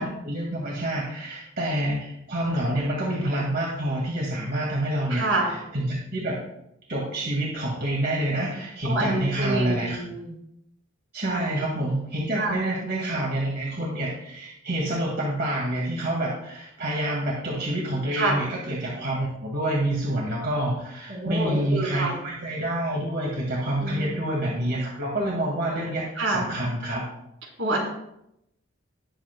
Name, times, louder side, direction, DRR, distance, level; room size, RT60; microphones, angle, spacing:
voice 1, 0.0-6.4 6.9-10.0 11.1-27.1, right 1 dB, 55° right, -3 dB, 2.0 m, -27 dB
voice 2, 5.1-5.5 8.8-10.3 11.3-11.4 12.4-12.6 18.1-18.4 21.1-22.1 23.8-24.1 26.2-26.5 27.6-27.8, right 2 dB, 75° right, -2 dB, 3.7 m, -27 dB
18.5 x 8.1 x 2.2 m, 0.80 s
head